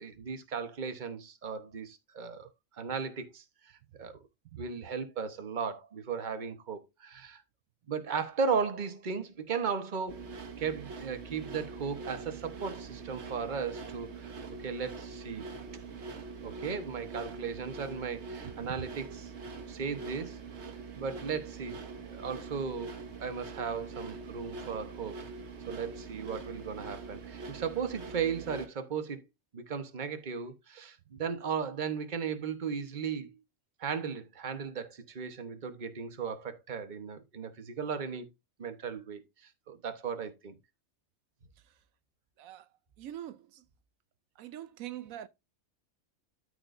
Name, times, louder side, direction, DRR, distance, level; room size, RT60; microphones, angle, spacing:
voice 1, 0.0-2.5 2.8-3.4 4.0-4.2 4.6-7.4 7.9-10.2 10.6-15.5 16.4-19.3 19.7-20.4 20.9-21.8 22.1-25.2 25.7-29.2 29.5-33.4 33.8-38.3 38.6-40.6, right 6 dB, 35° right, 1.1 m, -36 dB
sound 1, 10.1-28.7, right 4 dB, 55° right, 1.4 m, -44 dB
voice 2, 43.0-43.4 44.4-45.3, right 12 dB, 85° right, 1.0 m, -42 dB
13.0 x 4.9 x 2.6 m
omnidirectional pair, 1.4 m